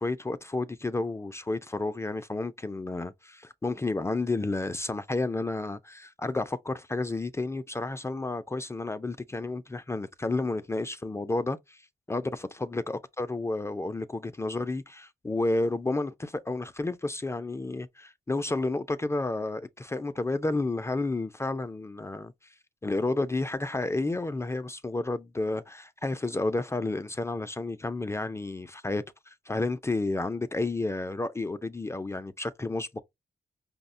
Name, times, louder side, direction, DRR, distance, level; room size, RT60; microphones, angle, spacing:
voice 1, 0.0-11.8 12.1-22.3 22.8-33.0, left 2 dB, 15° left, 0.3 m, -31 dB
5.4 x 2.1 x 2.5 m
wide cardioid pair, 115°, 16 cm